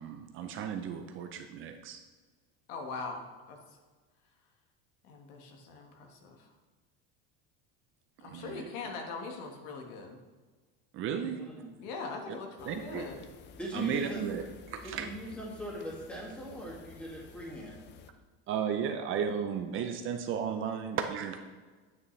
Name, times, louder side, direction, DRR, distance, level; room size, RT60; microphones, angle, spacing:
voice 1, 0.0-2.0 8.2-8.7 10.9-11.4 12.3-12.4 12.6-13.1 13.7-15.1 18.5-21.4, right 7 dB, 40° right, 6 dB, 0.6 m, -34 dB
voice 2, 2.7-3.6 5.0-6.5 8.2-10.2 11.8-13.2 13.7-14.2, left 4 dB, 70° left, 3 dB, 1.6 m, -41 dB
voice 3, 11.1-11.7 13.6-14.2 14.8-17.8, equal, 5° left, -4 dB, 2.1 m, -41 dB
sound 1, 12.6-18.1, left 6 dB, 35° left, 0.5 m, -53 dB
9.4 x 8.3 x 3.2 m, 1.4 s
cardioid pair, 155°, 33 cm